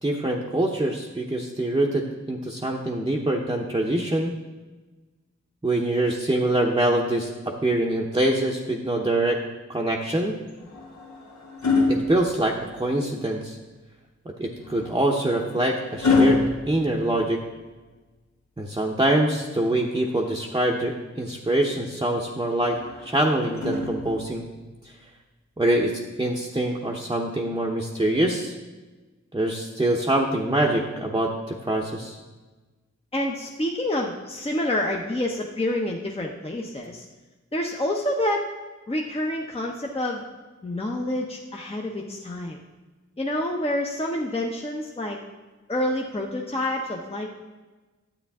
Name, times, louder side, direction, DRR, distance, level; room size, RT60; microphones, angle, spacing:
voice 1, 0.0-4.3 5.6-7.3 7.6-9.4 9.7-10.3 11.9-13.6 14.4-16.4 16.7-17.4 18.6-22.8 23.0-24.4 25.6-25.9 26.2-28.5 29.3-32.2, right 1 dB, 15° right, -2 dB, 0.8 m, -24 dB
sound 1, 10.5-13.0 14.5-17.7 19.5-20.7 22.6-24.5 25.7-25.9, left 3 dB, 75° left, 1.4 m, -27 dB
voice 2, 33.1-37.0 37.5-38.5 38.9-40.2 40.6-42.6 43.2-45.2 45.7-47.3, left 1 dB, 20° left, 0 dB, 0.8 m, -28 dB
10.0 x 8.2 x 3.6 m, 1.2 s
wide cardioid pair, 75°, 29 cm